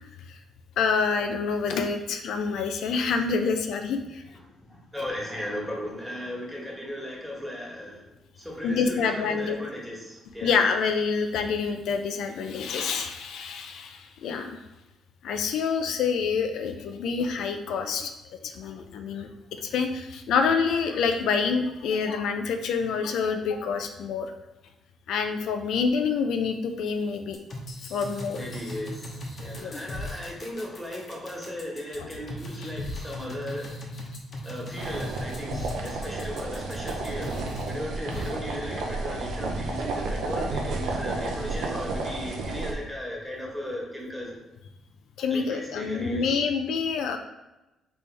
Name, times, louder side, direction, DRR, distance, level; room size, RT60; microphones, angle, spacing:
voice 1, 0.8-4.2 8.6-9.6 10.4-14.6 15.2-18.1 18.4-19.3 19.6-24.3 25.1-27.4 27.9-28.4 29.6-29.7 32.0-32.1 32.6-32.7 45.2-47.2, left 5 dB, 80° left, 6 dB, 0.4 m, -27 dB
voice 2, 4.7-8.0 8.4-10.6 28.4-29.1 29.4-33.7 34.4-37.3 37.6-44.4 45.3-46.5, equal, ahead, -4 dB, 1.4 m, -36 dB
sound 1, 27.3-37.7 38.1-38.3, left 1 dB, 50° left, 0.9 m, -37 dB
sound 2, 34.8-42.7, right 3 dB, 85° right, 0.6 m, -32 dB
4.2 x 3.2 x 3.3 m, 0.98 s
cardioid pair, 90°, 0 cm